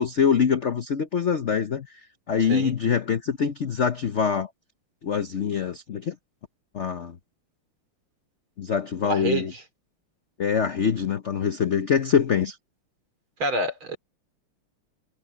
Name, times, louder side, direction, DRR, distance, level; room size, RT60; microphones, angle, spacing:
voice 1, 0.0-1.9 2.3-4.5 5.0-6.1 6.7-7.1 8.6-9.5 10.4-12.6, left 7 dB, 65° left, 0.7 m, -24 dB
voice 2, 9.0-9.6 13.4-14.0, right 2 dB, 65° right, 4.6 m, -27 dB
omnidirectional pair, 2.4 m